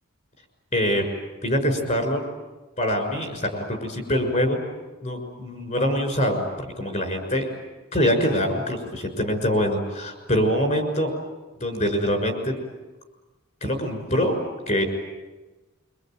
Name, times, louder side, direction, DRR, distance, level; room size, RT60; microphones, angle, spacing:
voice 1, 0.7-1.0 1.4-2.2 2.8-4.6 5.0-7.5 7.9-11.1 11.6-12.5 13.6-14.4 14.7-14.8, equal, 35° left, 4 dB, 6.3 m, -24 dB
26.5 x 24.5 x 9.2 m, 1.2 s
head